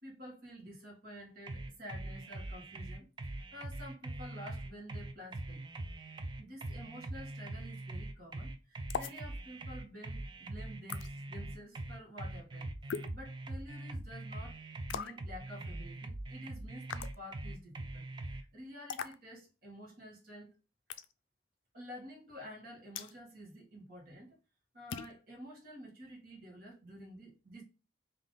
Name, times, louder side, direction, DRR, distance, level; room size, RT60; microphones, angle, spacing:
voice 1, 0.0-5.7 6.4-14.6 14.9-20.6 21.7-24.4 24.7-27.6, equal, 50° right, 1.4 m, -50 dB
sound 1, 1.5-18.4, right 2 dB, 25° right, 0.3 m, -42 dB
sound 2, 8.9-9.2 10.9-11.1 12.9-13.1 14.9-15.2 16.9-17.2 18.9-19.2 20.9-21.1 22.9-23.1 24.9-25.2, left 7 dB, 80° left, 0.4 m, -39 dB
3.7 x 2.8 x 3.8 m
head